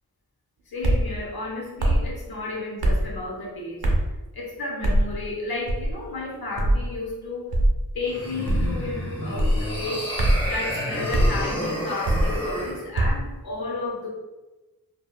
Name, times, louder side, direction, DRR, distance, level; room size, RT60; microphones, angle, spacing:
voice 1, 0.7-3.8 4.3-7.5 7.9-10.1 10.5-14.1, left 2 dB, 80° left, -2 dB, 0.8 m, -32 dB
Golpe Palo y Mano, 0.8-1.1 1.8-2.1 2.8-3.1 3.8-4.1 4.8-5.1 5.7-6.0 6.6-6.8 7.5-7.8 8.5-8.8 9.4-9.6 10.2-10.5 11.1-11.3 12.0-12.4 13.0-13.2, right 1 dB, 85° right, 0.6 m, -21 dB
sound 1, 8.0-12.8, left 1 dB, 15° left, 0.8 m, -31 dB
2.9 x 2.2 x 2.2 m, 1.1 s
cardioid pair, 55°, 37 cm